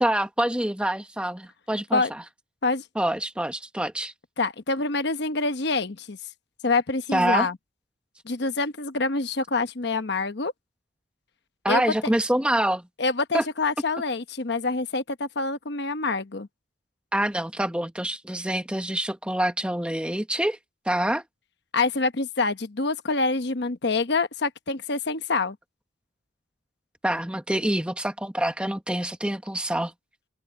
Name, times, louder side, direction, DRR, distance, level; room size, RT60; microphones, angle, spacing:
voice 1, 0.0-2.2 2.9-4.1 7.1-7.5 11.6-12.8 13.3-13.4 17.1-20.6 20.9-21.2 27.0-29.9, right 1 dB, 5° right, 1.1 m, -26 dB
voice 2, 4.4-6.2 6.6-7.6 8.2-10.5 11.7-11.9 13.0-16.5 21.7-25.6, left 3 dB, 55° left, 1.0 m, -26 dB
head